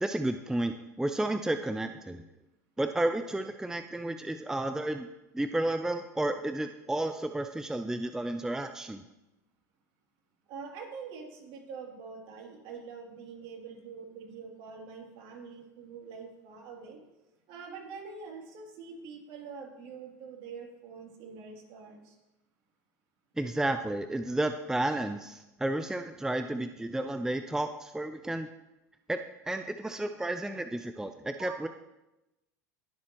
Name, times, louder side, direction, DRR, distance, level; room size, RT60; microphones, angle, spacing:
voice 1, 0.0-2.2 2.8-5.1 5.3-9.0 23.4-28.5 29.1-31.7, right 1 dB, 5° right, 8 dB, 0.5 m, -32 dB
voice 2, 10.5-17.0 17.5-22.1 31.4-31.6, right 5 dB, 60° right, 0 dB, 2.8 m, -45 dB
20.0 x 7.3 x 3.0 m, 0.97 s
hypercardioid pair, 85°, 10 cm